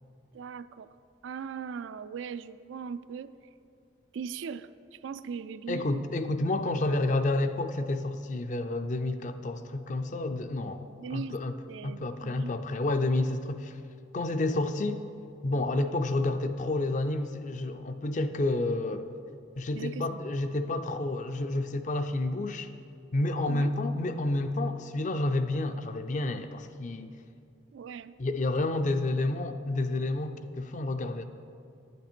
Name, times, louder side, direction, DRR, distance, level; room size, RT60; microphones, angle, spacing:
voice 1, 0.3-0.9 1.2-3.3 4.1-6.0 11.0-11.4 11.7-12.6 19.7-20.2 23.5-23.7 27.7-28.2, right 6 dB, 80° right, 14 dB, 0.3 m, -39 dB
voice 2, 5.7-11.6 11.8-13.8 14.1-15.0 15.4-19.1 19.6-22.7 23.1-27.1 28.2-31.2, left 2 dB, 40° left, 9 dB, 0.4 m, -30 dB
10.5 x 8.1 x 4.4 m, 2.5 s
head